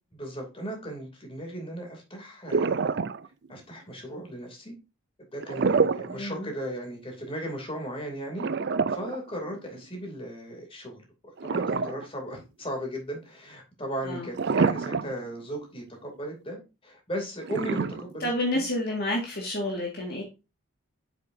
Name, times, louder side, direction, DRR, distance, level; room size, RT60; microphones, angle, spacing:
voice 1, 0.1-3.0 3.5-4.8 5.3-8.5 8.9-11.1 11.4-18.6, equal, 25° left, 2.8 m, -36 dB
sound 1, 2.5-3.5 5.4-6.2 6.6-6.7 8.4-9.9 11.4-12.3 12.7-12.8 14.3-15.3 15.6-15.7 17.4-18.5, right 4 dB, 55° right, 0.4 m, -27 dB
voice 2, 6.1-6.5 14.0-14.3 18.2-20.2, left 1 dB, 50° left, 2.0 m, -29 dB
7.9 x 7.2 x 2.7 m
head